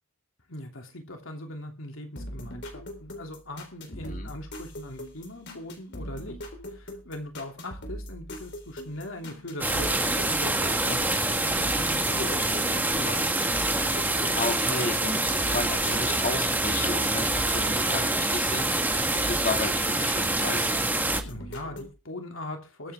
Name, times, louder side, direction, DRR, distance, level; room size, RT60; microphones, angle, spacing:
voice 1, 0.5-6.4 6.7-10.5 10.8-13.7 21.2-22.9, left 1 dB, 80° left, 3 dB, 2.9 m, -40 dB
sound 1, 2.2-18.8 19.2-20.7 21.0-21.9, equal, 60° left, 3.7 m, -41 dB
voice 2, 3.9-4.3 14.3-20.8, left 3 dB, 45° left, 5 dB, 2.3 m, -33 dB
sound 2, 9.6-21.2, right 2 dB, 10° right, 1.6 m, -26 dB
22.0 x 8.4 x 3.7 m, 0.31 s
head